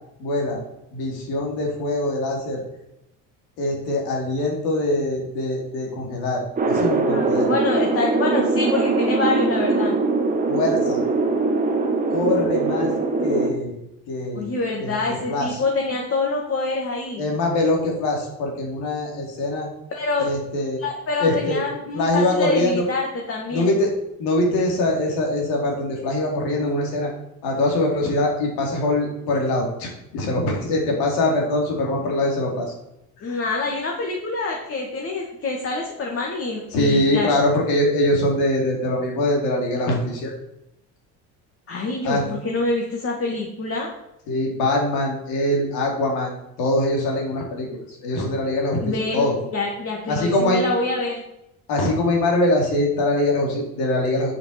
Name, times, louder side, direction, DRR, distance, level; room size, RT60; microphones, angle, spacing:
voice 1, 0.2-0.6 0.9-2.6 3.6-7.5 10.5-11.1 12.1-12.9 13.2-13.8 14.1-14.5 14.8-15.6 17.2-19.7 20.2-20.8 21.2-21.6 21.9-22.9 23.5-23.9 24.2-27.1 27.4-32.7 33.2-33.4 36.7-40.3 42.0-42.2 44.3-49.4 50.1-50.6 51.7-54.3, left 1 dB, 80° left, 0 dB, 3.8 m, -23 dB
sound 1, 6.6-13.5, right 3 dB, 20° right, 1.5 m, -21 dB
voice 2, 7.1-10.0 14.3-17.3 19.9-20.3 20.8-23.7 33.2-37.3 41.7-43.9 48.8-51.2, left 3 dB, 40° left, -1 dB, 2.1 m, -26 dB
8.4 x 6.7 x 6.0 m, 0.84 s
supercardioid pair, 100°, 36 cm